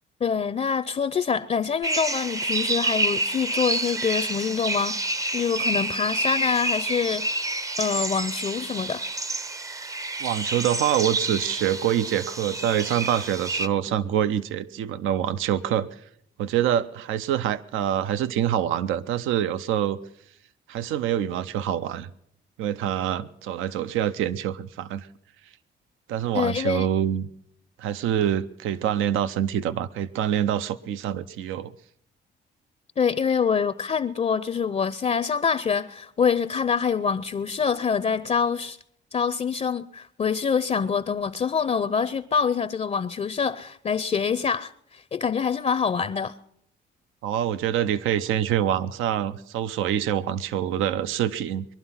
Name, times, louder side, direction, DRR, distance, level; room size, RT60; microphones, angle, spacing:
voice 1, 0.2-5.0 5.3-7.3 7.8-9.1 26.3-26.9 33.0-38.8 39.1-46.3, left 6 dB, 35° left, 0.5 m, -25 dB
sound 1, 1.8-13.7, right 2 dB, 15° right, 0.5 m, -28 dB
voice 2, 10.2-16.0 16.4-20.0 20.7-22.1 22.6-25.1 26.1-27.3 27.8-31.7 47.2-51.7, right 10 dB, 85° right, 0.6 m, -25 dB
22.0 x 11.5 x 5.6 m
cardioid pair, 90°, 20 cm